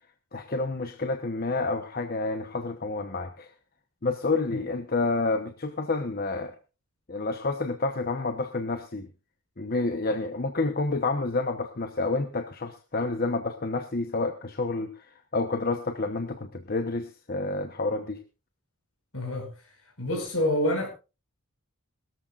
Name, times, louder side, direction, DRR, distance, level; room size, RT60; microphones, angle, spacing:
voice 1, 0.3-3.5 4.0-6.5 7.1-9.1 9.6-18.2, left 3 dB, 40° left, 1.0 m, -29 dB
voice 2, 19.1-19.5 20.0-20.9, left 1 dB, 65° left, 5.3 m, -27 dB
21.5 x 13.5 x 2.5 m
head